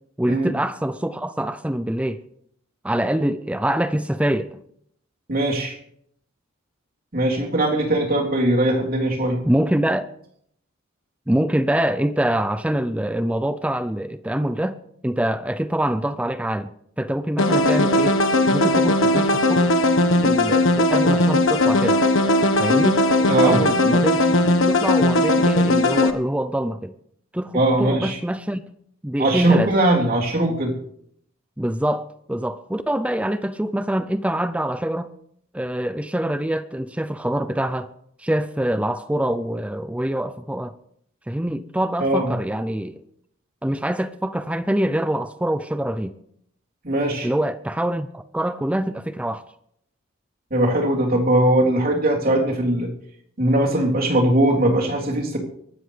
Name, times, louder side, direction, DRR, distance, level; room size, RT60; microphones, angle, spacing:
voice 1, 0.2-2.2 2.8-4.6 9.4-10.1 11.3-14.8 15.0-18.2 18.5-19.8 20.2-22.0 22.6-26.9 27.3-28.6 29.0-29.7 31.6-35.1 35.5-37.9 38.2-40.7 41.3-43.0 43.6-46.1 47.2-49.4, right 1 dB, 5° right, 0.5 m, -25 dB
voice 2, 5.3-5.8 7.1-9.4 23.3-23.6 27.5-28.2 29.2-30.7 42.0-42.3 46.8-47.3 50.5-52.9 53.4-55.4, right 1 dB, 50° right, 3.5 m, -20 dB
sound 1, 17.4-26.1, left 1 dB, 75° left, 1.3 m, -18 dB
24.0 x 13.0 x 3.4 m
head